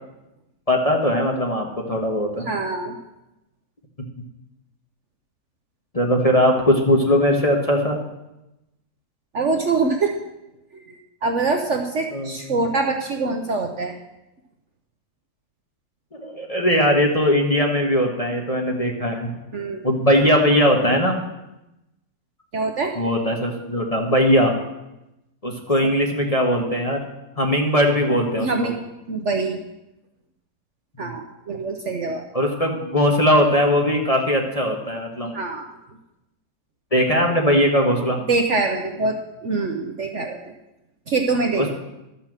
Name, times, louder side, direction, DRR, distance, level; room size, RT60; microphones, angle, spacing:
voice 1, 0.7-2.4 5.9-8.0 12.1-12.3 16.1-19.3 19.8-21.1 23.0-24.5 25.4-27.0 27.4-28.7 31.0-31.1 32.3-35.3 36.9-38.2 41.5-41.7, equal, 25° left, 1 dB, 1.2 m, -20 dB
voice 2, 2.4-3.0 9.3-10.1 10.7-13.9 19.5-19.9 22.5-23.0 28.4-28.7 29.1-29.6 31.0-32.3 35.3-35.7 38.3-39.2 39.4-40.5 41.1-41.7, right 3 dB, 55° right, 3 dB, 1.0 m, -24 dB
12.5 x 5.7 x 7.4 m, 0.95 s
omnidirectional pair, 1.8 m